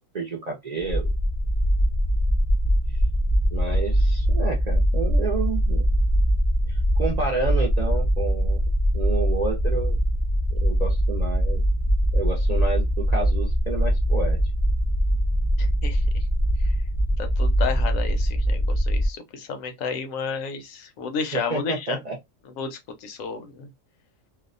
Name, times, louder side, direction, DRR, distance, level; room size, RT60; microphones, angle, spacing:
voice 1, 0.1-1.1 3.5-5.8 6.7-8.6 8.9-10.0 10.5-11.6 12.1-14.4 21.3-22.2, right 3 dB, 55° right, 0.4 m, -30 dB
sound 1, 0.8-19.1, equal, 45° left, 0.5 m, -22 dB
voice 2, 15.6-16.2 16.6-16.7 17.2-22.0 22.6-23.7, left 5 dB, 90° left, 1.0 m, -32 dB
2.7 x 2.1 x 2.5 m
omnidirectional pair, 1.4 m